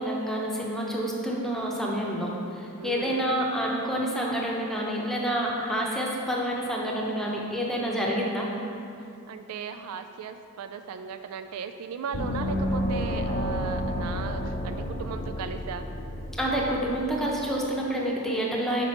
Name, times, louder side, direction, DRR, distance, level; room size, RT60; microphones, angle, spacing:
voice 1, 0.0-8.5 16.4-18.8, equal, ahead, -3 dB, 0.8 m, -28 dB
voice 2, 2.8-3.2 9.3-15.9, right 6 dB, 75° right, 8 dB, 0.3 m, -37 dB
Gong, 12.1-17.4, equal, 50° left, 0.6 m, -31 dB
6.0 x 5.0 x 4.3 m, 2.7 s
head